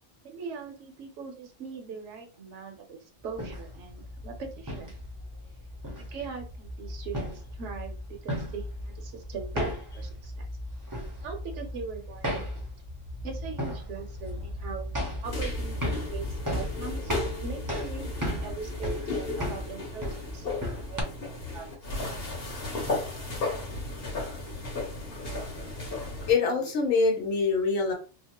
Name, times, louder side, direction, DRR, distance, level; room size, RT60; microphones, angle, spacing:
voice 1, 0.2-5.0 5.9-10.5 11.2-12.4 13.2-14.8 15.2-20.5 20.7-21.1 21.4-21.7 23.0-23.4 26.6-26.7, right 5 dB, 70° right, 4 dB, 0.9 m, -41 dB
sound 1, 3.3-21.0, left 1 dB, 20° right, 0.5 m, -35 dB
sound 2, 15.2-26.3, left 2 dB, 50° left, 1.2 m, -35 dB
voice 2, 26.3-27.9, left 4 dB, 80° left, 1 dB, 1.2 m, -24 dB
2.8 x 2.1 x 2.9 m, 0.36 s
omnidirectional pair, 1.3 m